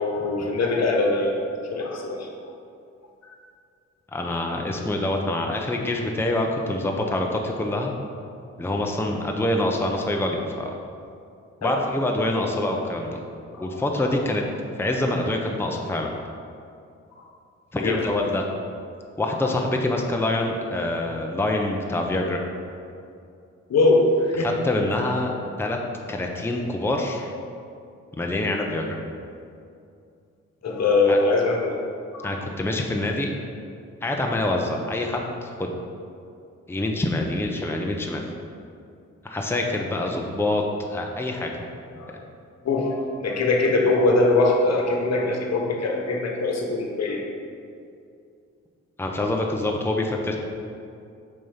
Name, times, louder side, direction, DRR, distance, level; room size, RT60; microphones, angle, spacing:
voice 1, 0.0-1.4 1.7-2.3 11.6-11.7 13.5-13.8 17.8-18.0 23.7-24.5 26.3-26.4 30.6-31.8 32.1-32.3 42.0-42.1 42.6-47.2, left 2 dB, 60° left, 1 dB, 1.2 m, -22 dB
voice 2, 4.1-8.0 8.6-10.7 11.6-13.2 13.6-14.4 14.8-16.1 17.7-18.4 19.2-22.4 24.4-25.3 25.6-25.8 26.1-27.3 28.2-29.0 31.1-31.2 32.2-33.3 34.0-35.7 36.7-38.2 39.2-41.6 49.0-50.4, left 1 dB, 10° left, 1 dB, 0.8 m, -25 dB
5.6 x 4.5 x 5.7 m, 2.5 s
supercardioid pair, 60°, 30 cm